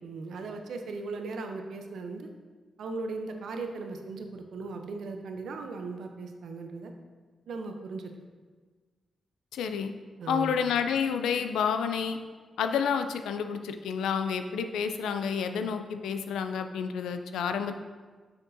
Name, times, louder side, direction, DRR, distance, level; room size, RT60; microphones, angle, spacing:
voice 1, 0.0-2.3 2.8-6.9 7.5-8.1 10.2-10.6, right 3 dB, 80° right, 5 dB, 0.6 m, -37 dB
voice 2, 9.5-9.9 10.3-12.2 12.6-17.8, left 7 dB, 90° left, 8 dB, 0.3 m, -29 dB
6.3 x 5.9 x 2.6 m, 1.4 s
supercardioid pair, 55°, 0 cm